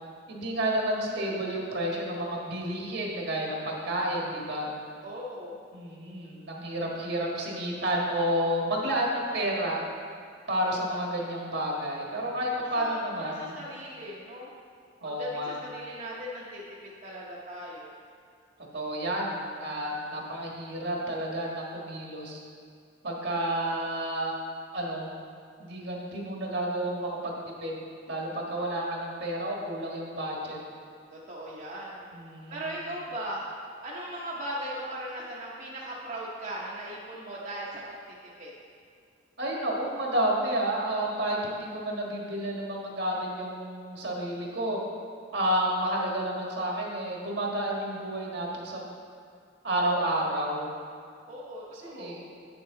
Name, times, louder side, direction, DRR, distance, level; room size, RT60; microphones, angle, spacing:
voice 1, 0.3-4.7 5.7-9.8 10.5-13.6 15.0-15.6 18.7-22.4 23.0-24.3 24.7-25.1 25.6-27.3 27.6-27.8 28.1-30.6 32.1-32.7 39.4-44.8 45.3-48.9 49.6-50.7 51.7-52.2, right 1 dB, 65° right, -2 dB, 1.5 m, -30 dB
voice 2, 5.0-5.6 12.7-14.5 15.0-17.9 23.3-23.6 31.1-32.1 32.5-33.5 33.8-38.0 38.4-38.5 51.3-52.2, right 1 dB, 45° right, -6 dB, 1.0 m, -38 dB
9.4 x 6.9 x 3.9 m, 2.2 s
head